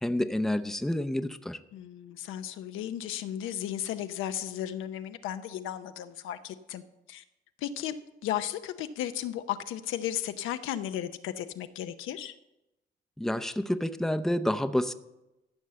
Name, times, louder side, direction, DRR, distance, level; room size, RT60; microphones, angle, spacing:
voice 1, 0.0-1.6 13.2-14.9, left 1 dB, ahead, 10 dB, 0.6 m, -29 dB
voice 2, 1.7-6.8 7.1-7.2 7.6-8.0 8.2-12.3, left 11 dB, 90° left, 9 dB, 0.7 m, -35 dB
14.5 x 5.6 x 7.5 m, 0.94 s
cardioid pair, 90°, 20 cm